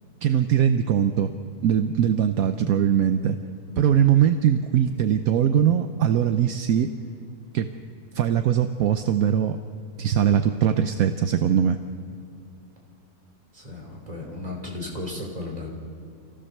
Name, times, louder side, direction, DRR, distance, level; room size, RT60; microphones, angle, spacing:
voice 1, 0.2-1.3 1.6-3.4 3.8-6.9 7.5-7.7 8.1-9.6 10.0-11.8, right 9 dB, 70° right, 8 dB, 1.1 m, -21 dB
voice 2, 13.5-15.7, left 2 dB, 25° right, -2 dB, 3.7 m, -34 dB
26.0 x 15.5 x 6.6 m, 2.6 s
omnidirectional pair, 1.6 m